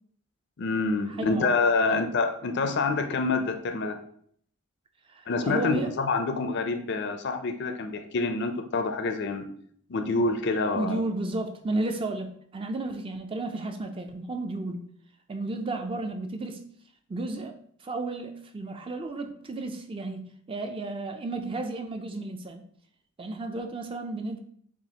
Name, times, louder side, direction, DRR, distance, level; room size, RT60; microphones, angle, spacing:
voice 1, 0.6-4.0 5.3-9.5 9.9-11.0, left 3 dB, 50° left, 7 dB, 0.4 m, -27 dB
voice 2, 1.2-1.5 1.9-2.0 5.1-5.9 10.7-14.9 15.3-16.6 17.1-17.6 17.8-22.6 23.2-24.4, right 2 dB, 25° right, 5 dB, 0.3 m, -33 dB
7.2 x 2.4 x 2.8 m, 0.63 s
head